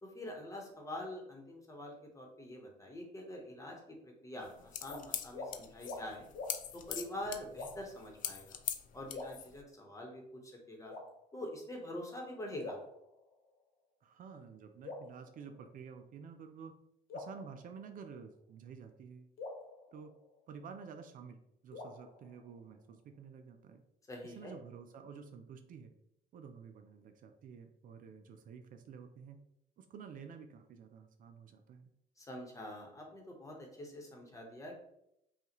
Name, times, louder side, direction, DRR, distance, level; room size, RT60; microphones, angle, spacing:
voice 1, 0.0-6.3 6.7-8.6 8.9-10.9 11.3-12.8 24.1-24.5 32.2-34.8, left 1 dB, 20° left, 1 dB, 1.1 m, -45 dB
sound 1, 4.4-9.6, left 9 dB, 50° left, 0.4 m, -42 dB
sound 2, 4.8-5.0 5.3-5.5 5.8-6.0 6.3-6.5 7.5-8.0 9.1-10.0 10.9-11.6 12.6-13.6 14.8-16.0 17.1-18.3 19.4-20.8 21.7-22.9, left 3 dB, 70° left, 1.2 m, -47 dB
voice 2, 14.0-16.7 17.1-19.3 19.9-20.1 20.5-23.8 24.2-25.9 26.3-29.4 29.8-31.9, right 6 dB, 55° right, 6 dB, 0.5 m, -51 dB
5.6 x 2.4 x 3.0 m, 0.78 s
cardioid pair, 110°, 17 cm